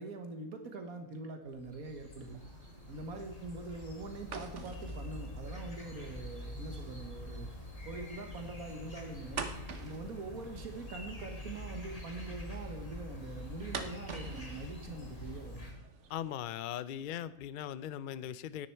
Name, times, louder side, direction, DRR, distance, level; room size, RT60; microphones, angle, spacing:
voice 1, 0.0-2.4 2.9-7.5 7.9-9.5 9.8-15.7, right 3 dB, 85° right, 5 dB, 1.7 m, -43 dB
sound 1, 1.5-15.7, left 1 dB, 25° left, 2.1 m, -45 dB
sound 2, 2.2-16.4, right 5 dB, 60° right, 1.3 m, -49 dB
voice 2, 16.1-18.7, left 10 dB, 70° left, 16 dB, 0.4 m, -39 dB
10.0 x 9.8 x 4.5 m, 0.78 s
omnidirectional pair, 1.5 m